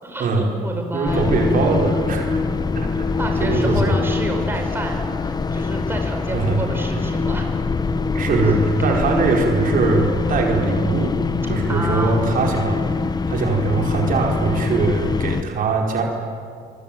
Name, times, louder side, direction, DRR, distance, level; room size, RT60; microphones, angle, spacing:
voice 1, 0.0-1.3 2.5-2.8 3.2-7.5 8.8-8.9 11.7-12.2, right 2 dB, 15° right, 2 dB, 5.2 m, -30 dB
voice 2, 0.9-2.4 2.7-3.1 3.4-4.0 6.3-6.6 8.1-11.1 11.5-12.9 13.3-16.0, right 3 dB, 55° right, 1 dB, 4.7 m, -21 dB
sound 1, 1.1-15.4, left 4 dB, 25° left, 1.1 m, -23 dB
25.5 x 23.5 x 9.2 m, 2.3 s
cardioid pair, 110°, 17 cm